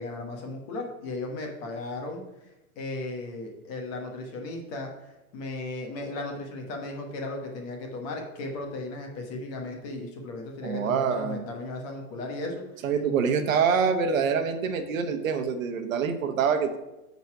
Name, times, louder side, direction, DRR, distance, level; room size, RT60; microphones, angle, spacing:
voice 1, 0.0-2.2 2.8-5.1 5.3-12.9, left 2 dB, 30° left, 2 dB, 1.2 m, -36 dB
voice 2, 10.6-11.4 12.8-16.8, right 6 dB, 65° right, 8 dB, 1.1 m, -25 dB
9.2 x 4.1 x 5.8 m, 0.99 s
supercardioid pair, 170°, 44 cm